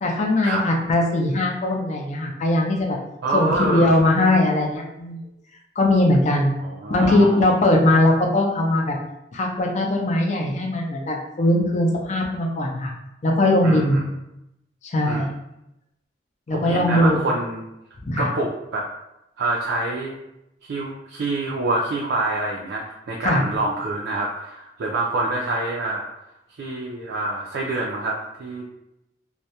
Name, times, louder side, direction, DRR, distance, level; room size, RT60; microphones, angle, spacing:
voice 1, 0.0-3.0 3.3-5.2 5.8-6.5 6.9-9.0 9.3-12.9 13.2-14.0 14.8-15.3 16.5-17.3 18.0-18.3 23.2-23.4, left 1 dB, 40° left, 0 dB, 0.4 m, -20 dB
voice 2, 3.2-4.0 6.6-7.5 13.6-14.0 15.1-15.3 16.5-17.6 18.2-18.8 19.4-20.2 20.6-26.1 26.6-28.7, right 2 dB, 75° right, -3 dB, 0.4 m, -26 dB
2.2 x 2.0 x 2.7 m, 0.88 s
head